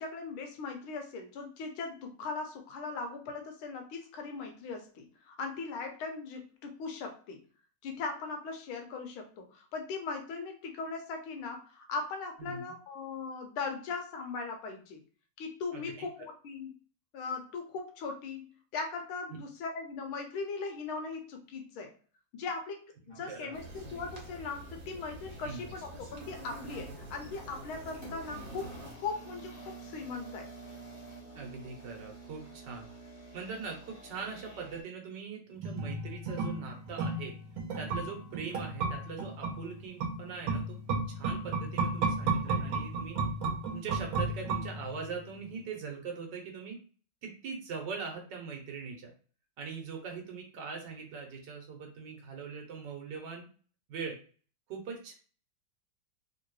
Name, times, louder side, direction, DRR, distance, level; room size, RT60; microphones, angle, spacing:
voice 1, 0.0-7.4 7.8-15.0 15.4-16.7 17.1-18.4 18.7-21.9 22.3-23.7 23.9-30.5, left 4 dB, 85° left, 4 dB, 1.6 m, -39 dB
voice 2, 15.7-16.1 23.3-23.5 25.4-25.6 31.3-32.9 33.3-37.3 37.8-43.3 43.7-46.8 47.2-49.1 49.6-53.5 53.9-54.2 54.7-55.2, right 5 dB, 65° right, 1 dB, 1.4 m, -41 dB
sound 1, 23.1-24.6 24.9-26.3 26.9-27.1 27.9-34.8, right 2 dB, 30° left, 1.4 m, -50 dB
sound 2, 23.5-28.9, right 1 dB, 45° right, 1.3 m, -46 dB
Wind chimes, 35.6-45.1 45.4-45.5, right 3 dB, 85° right, 1.6 m, -33 dB
3.6 x 2.9 x 3.0 m, 0.40 s
omnidirectional pair, 2.2 m